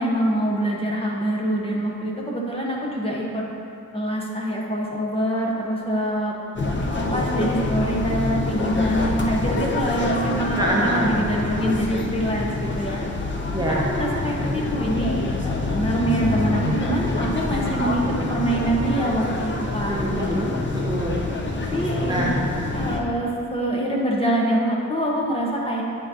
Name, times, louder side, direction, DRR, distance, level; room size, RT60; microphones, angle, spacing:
voice 1, 0.0-3.4 3.9-6.3 6.9-13.0 13.6-18.0 18.3-20.0 21.5-22.3 22.7-25.8, right 1 dB, 20° left, -3 dB, 0.9 m, -25 dB
sound 1, 6.6-23.0, left 2 dB, 40° left, 0.6 m, -26 dB
voice 2, 10.6-11.1 13.5-13.9 19.9-21.2 22.1-22.3, equal, 15° right, -5 dB, 0.7 m, -25 dB
8.8 x 5.6 x 2.8 m, 2.6 s
wide cardioid pair, 140°, 30 cm